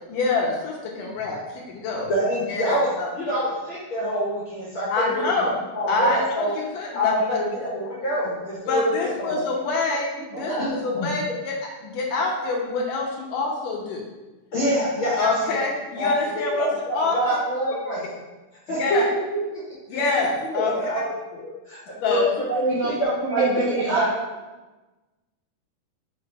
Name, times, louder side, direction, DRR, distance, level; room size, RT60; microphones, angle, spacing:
voice 1, 0.1-2.1 2.5-3.1 4.9-5.5 5.9-7.4 8.7-11.5 11.8-14.0 15.2-16.7 16.9-17.2 18.7-19.0 19.9-21.0 22.0-22.2, left 3 dB, 75° left, -2 dB, 2.2 m, -26 dB
voice 2, 2.1-2.9 3.1-5.2 5.7-6.5 6.9-9.4 10.5-10.7 10.9-11.1 14.5-15.3 16.0-16.1 16.6-18.1 18.7-19.6 19.9-20.0 20.5-21.0 21.3-22.2 22.5-23.7, equal, 60° left, -7 dB, 1.4 m, -26 dB
voice 3, 23.3-24.1, right 3 dB, 80° right, -4 dB, 1.7 m, -23 dB
5.9 x 5.2 x 3.3 m, 1.1 s
omnidirectional pair, 4.2 m